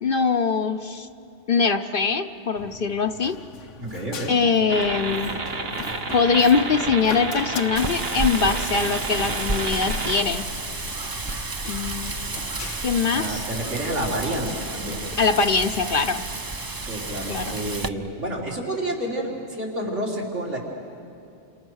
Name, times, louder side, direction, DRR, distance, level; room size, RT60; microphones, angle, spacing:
voice 1, 0.0-1.1 1.5-3.4 4.3-5.4 6.1-10.5 11.7-12.4 12.8-13.4 15.2-16.2 17.3-17.6, left 5 dB, 50° left, 8 dB, 0.9 m, -22 dB
Run, 2.6-18.6, left 6 dB, 80° left, 1.3 m, -41 dB
voice 2, 3.8-4.3 13.1-15.1 16.9-20.6, right 1 dB, 75° right, -2 dB, 4.6 m, -29 dB
sound 1, 4.7-10.2, right 3 dB, 55° right, 1.6 m, -30 dB
Wind, 7.8-17.9, right 3 dB, 25° right, 0.5 m, -31 dB
30.0 x 27.0 x 6.4 m, 2.6 s
omnidirectional pair, 1.2 m